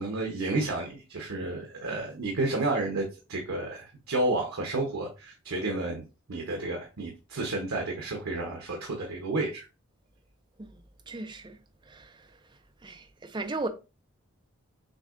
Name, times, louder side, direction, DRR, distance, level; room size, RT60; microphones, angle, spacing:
voice 1, 0.0-6.0 6.3-9.7, right 2 dB, 80° right, 0.9 m, -31 dB
voice 2, 10.6-11.6 11.9-12.4 12.8-13.7, right 2 dB, 20° right, 0.4 m, -37 dB
6.5 x 2.7 x 2.5 m
head